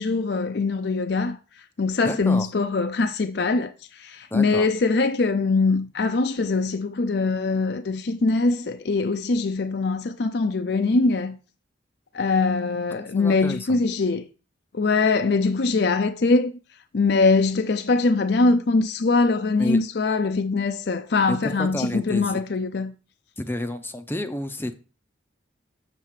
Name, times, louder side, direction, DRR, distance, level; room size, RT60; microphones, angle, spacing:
voice 1, 0.0-11.4 12.1-14.2 14.7-16.5 16.9-22.9, left 3 dB, 60° left, 0.5 m, -22 dB
voice 2, 2.0-2.4 4.3-4.7 13.0-13.8 19.6-19.8 21.3-22.4 23.4-24.8, left 1 dB, 10° left, 0.6 m, -30 dB
7.4 x 6.7 x 4.8 m
head